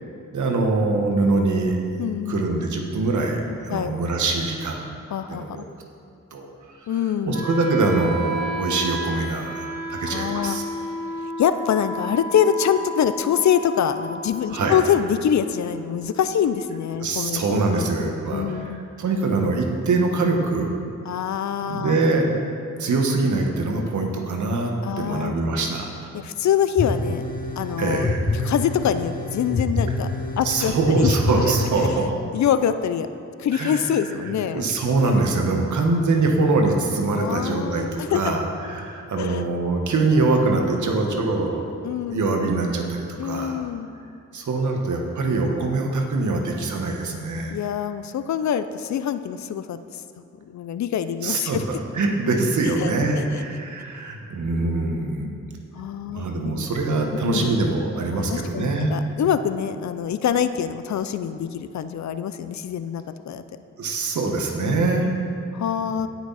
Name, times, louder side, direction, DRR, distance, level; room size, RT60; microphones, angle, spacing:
voice 1, 0.3-1.8 2.3-4.8 5.3-5.6 6.3-6.5 7.2-10.6 14.5-14.8 17.0-18.4 19.0-20.7 21.7-22.3 22.8-26.1 27.8-28.2 30.4-32.1 33.5-33.8 34.5-41.7 42.1-43.6 44.3-47.5 51.2-55.2 56.1-58.9 63.8-65.1, right 3 dB, 75° right, 2 dB, 1.4 m, -23 dB
voice 2, 2.0-2.5 3.7-4.0 5.1-5.6 6.9-7.4 10.1-10.9 11.2-17.4 17.7-17.9 18.3-18.8 21.0-22.0 24.8-25.4 26.1-27.3 27.6-28.1 28.4-30.1 30.4-31.2 31.8-31.9 32.3-33.1 33.4-34.7 37.2-38.2 39.2-39.4 41.8-42.4 43.2-43.9 47.5-50.0 50.4-51.6 52.8-52.9 53.2-53.4 55.2-55.4 55.7-56.7 57.1-57.6 58.1-63.4 64.6-64.9 65.5-66.1, left 8 dB, 65° left, 12 dB, 0.5 m, -25 dB
Wind instrument woodwind instrument, 7.3-17.3, right 1 dB, 55° right, 1.5 m, -33 dB
sound 1, 26.8-32.1, left 2 dB, 30° left, 1.0 m, -27 dB
17.0 x 6.1 x 4.1 m, 2.5 s
cardioid pair, 75°, 30 cm